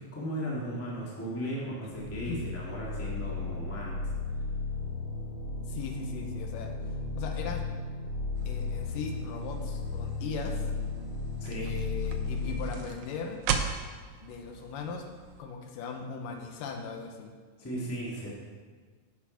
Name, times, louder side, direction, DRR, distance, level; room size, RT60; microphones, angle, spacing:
voice 1, 0.0-4.0 11.4-11.7 17.6-18.3, right 1 dB, 10° left, -5 dB, 0.7 m, -36 dB
sound 1, 1.9-12.6, left 3 dB, 60° left, 2.6 m, -35 dB
voice 2, 5.7-6.7 7.2-7.6 8.5-10.7 11.5-13.4 14.2-15.1 15.4-17.3 18.1-18.3, left 5 dB, 80° left, 3 dB, 2.4 m, -39 dB
sound 2, 8.3-15.4, right 7 dB, 85° right, 1.6 m, -39 dB
7.6 x 6.8 x 5.1 m, 1.5 s
omnidirectional pair, 3.9 m